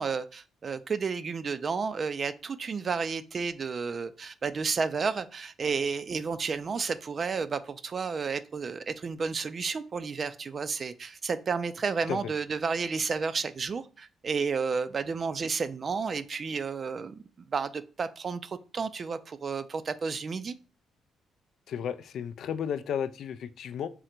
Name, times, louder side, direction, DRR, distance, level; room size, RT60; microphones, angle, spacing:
voice 1, 0.0-20.6, right 5 dB, 45° right, 13 dB, 0.3 m, -32 dB
voice 2, 21.7-23.9, left 8 dB, 70° left, 11 dB, 0.3 m, -33 dB
3.7 x 2.1 x 4.3 m, 0.35 s
cardioid pair, 90°, 0 cm